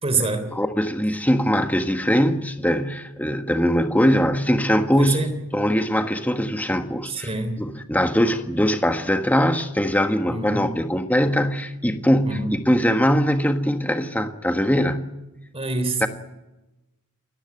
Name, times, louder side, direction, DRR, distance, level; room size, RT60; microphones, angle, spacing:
voice 1, 0.0-0.5 5.0-5.3 7.1-7.6 10.3-10.7 12.3-12.5 15.5-16.1, right 3 dB, 25° right, 3.6 m, -26 dB
voice 2, 0.5-7.3 7.6-15.1 16.0-16.1, equal, 5° left, 1.4 m, -21 dB
28.0 x 15.0 x 9.7 m
head